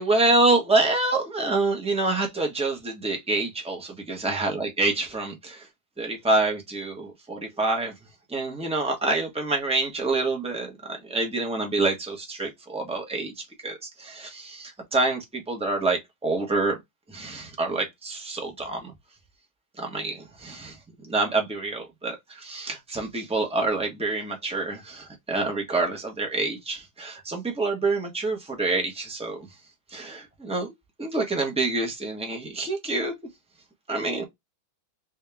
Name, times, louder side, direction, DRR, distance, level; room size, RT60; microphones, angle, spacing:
voice 1, 0.0-3.8 4.1-5.6 6.0-7.9 8.3-13.3 13.6-16.8 17.1-18.9 19.8-20.8 21.0-29.5 29.9-30.7 31.0-33.1 33.9-34.2, right 2 dB, 5° right, 0.7 m, -27 dB
3.5 x 2.8 x 3.4 m
omnidirectional pair, 2.2 m